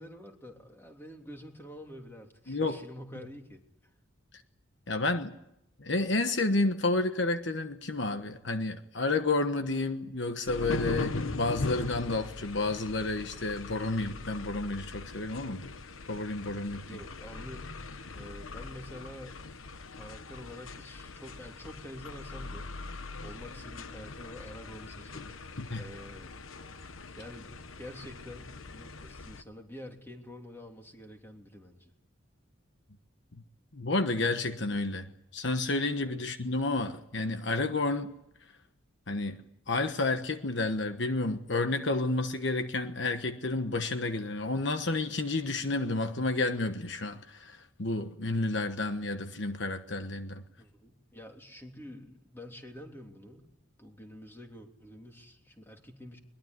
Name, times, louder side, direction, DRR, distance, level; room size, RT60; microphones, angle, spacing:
voice 1, 0.0-3.9 16.7-17.7 18.1-19.4 19.9-22.7 23.2-25.4 25.7-26.3 27.2-27.5 27.8-31.9 36.0-36.2 50.6-53.5 53.8-56.2, equal, 10° left, 3.2 m, -47 dB
voice 2, 2.5-2.8 4.9-5.4 5.8-15.6 16.1-16.8 25.6-25.8 33.7-38.1 39.1-39.4 39.7-50.4, left 2 dB, 60° left, 1.3 m, -30 dB
sound 1, 10.5-29.4, left 3 dB, 85° left, 1.1 m, -41 dB
22.0 x 21.5 x 9.8 m
head